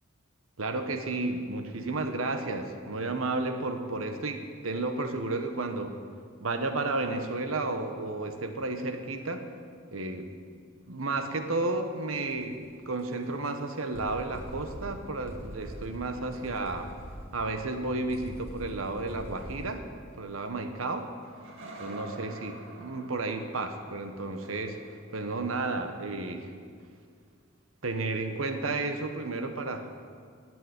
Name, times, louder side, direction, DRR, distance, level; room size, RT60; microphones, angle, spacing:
voice 1, 0.6-6.0 6.4-9.4 9.9-10.3 10.9-12.6 12.9-16.9 17.3-19.9 20.2-21.1 21.8-22.5 22.8-24.8 25.1-26.5 27.8-29.9, right 2 dB, 85° right, 7 dB, 1.2 m, -32 dB
sound 1, 10.8-12.1 14.8-20.7 21.2-26.3 28.7-28.8, right 1 dB, 70° right, 2.2 m, -51 dB
sound 2, 12.2-12.5 13.0-13.1 13.5-13.6 13.9-19.8, equal, 15° right, 1.7 m, -44 dB
11.5 x 7.7 x 9.4 m, 2.1 s
head